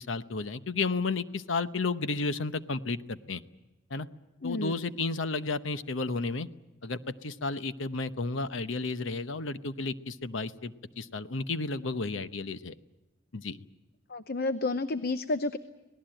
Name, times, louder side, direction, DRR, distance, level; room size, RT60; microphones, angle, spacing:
voice 1, 0.0-3.4 3.9-4.1 4.4-6.5 6.8-12.7 13.3-13.6, left 3 dB, 85° left, 12 dB, 0.9 m, -32 dB
voice 2, 4.4-4.7 14.1-15.6, left 2 dB, 55° left, 11 dB, 0.8 m, -30 dB
26.0 x 19.0 x 9.0 m, 1.1 s
head